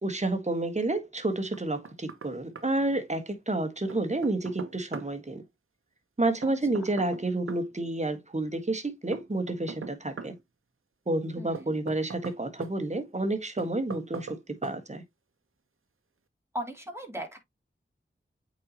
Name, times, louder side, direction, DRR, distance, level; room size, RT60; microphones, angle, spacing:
voice 1, 0.0-5.4 6.2-10.4 11.1-15.0, right 2 dB, 35° right, 1.5 m, -30 dB
Knock, 1.5-2.3 2.6-2.7 3.9-5.1 6.4-7.7 9.1-10.4 11.5-12.7 13.6-14.4 14.6-14.8, right 5 dB, 85° right, 0.9 m, -40 dB
voice 2, 11.4-11.7 16.5-17.4, equal, 10° right, 2.8 m, -37 dB
8.4 x 4.2 x 2.9 m
wide cardioid pair, 55°, 21 cm